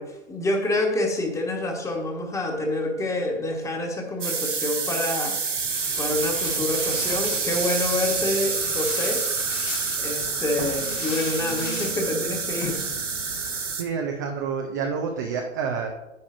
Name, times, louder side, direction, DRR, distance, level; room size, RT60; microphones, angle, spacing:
voice 1, 0.0-5.4 6.0-9.2 10.0-12.9, left 2 dB, 10° left, 2 dB, 1.3 m, -27 dB
sound 1, 4.2-13.8, right 5 dB, 75° right, 1.4 m, -28 dB
sound 2, 5.5-13.7, left 4 dB, 75° left, 2.0 m, -37 dB
voice 2, 13.8-15.9, right 6 dB, 15° right, 2 dB, 0.4 m, -28 dB
10.5 x 9.5 x 2.5 m, 0.98 s
figure-of-eight pair, 110°, 37 cm